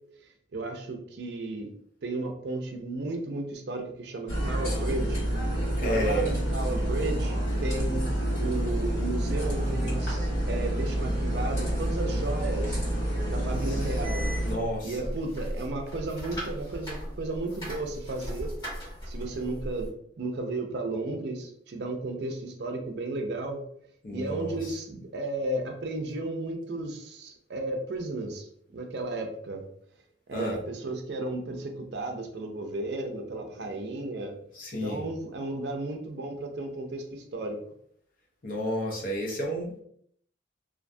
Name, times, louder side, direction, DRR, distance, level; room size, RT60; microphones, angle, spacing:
voice 1, 0.2-1.7 2.0-5.2 5.8-12.8 13.2-14.3 14.8-18.5 19.1-19.9 20.2-23.6 24.1-28.5 28.7-29.6 30.3-34.3 34.8-37.6, right 2 dB, 60° right, 4 dB, 0.4 m, -34 dB
sound 1, 4.3-14.5, right 1 dB, 70° left, 1.4 m, -28 dB
voice 2, 5.8-6.3 13.7-13.8 14.4-15.1 24.0-24.6 30.3-30.6 34.5-35.0 38.4-39.8, equal, 45° left, 0 dB, 0.6 m, -31 dB
sound 2, 14.0-19.9, equal, 20° left, 1.1 m, -37 dB
2.5 x 2.2 x 2.5 m, 0.66 s
head